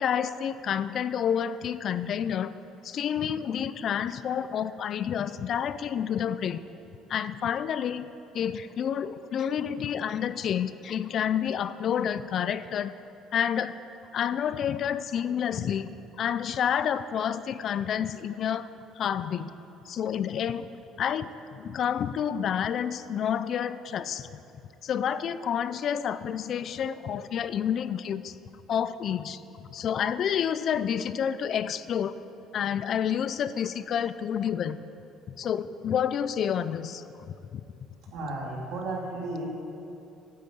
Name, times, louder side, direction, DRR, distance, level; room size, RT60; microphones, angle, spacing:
voice 1, 0.0-2.5 2.8-6.6 7.1-8.1 8.3-12.9 13.3-13.7 14.1-15.9 16.2-18.7 19.0-19.5 19.9-20.7 21.0-24.4 24.8-28.4 28.7-32.1 32.5-34.8 35.4-37.3, left 8 dB, 50° left, 14 dB, 0.4 m, -29 dB
voice 2, 38.1-39.5, right 2 dB, 70° right, -2 dB, 2.7 m, -33 dB
9.4 x 8.6 x 8.2 m, 2.8 s
cardioid pair, 120°, 0 cm